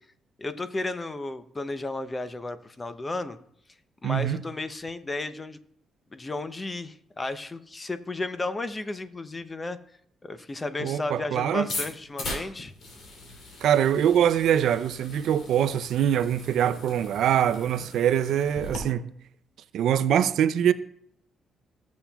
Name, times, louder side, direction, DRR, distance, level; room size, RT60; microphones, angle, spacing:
voice 1, 0.4-3.4 4.0-5.6 6.1-9.8 10.2-12.7, left 2 dB, 25° left, 0.7 m, -33 dB
voice 2, 4.0-4.4 10.8-11.7 13.6-19.1 19.7-20.7, right 9 dB, 75° right, 0.4 m, -23 dB
sound 1, 11.6-18.8, left 2 dB, 65° left, 2.9 m, -39 dB
16.0 x 7.2 x 2.3 m
cardioid pair, 90°, 0 cm